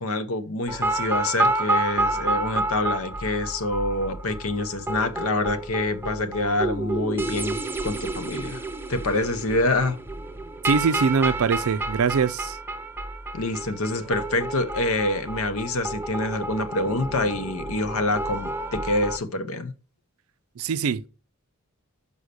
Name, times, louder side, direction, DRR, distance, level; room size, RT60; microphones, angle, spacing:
voice 1, 0.0-8.6 8.9-10.0 13.3-19.7, left 2 dB, 70° left, 0.9 m, -26 dB
sound 1, 0.7-19.2, right 2 dB, 10° right, 0.5 m, -30 dB
voice 2, 10.6-12.6 20.6-21.1, right 5 dB, 70° right, 0.4 m, -23 dB
6.4 x 5.5 x 6.7 m
head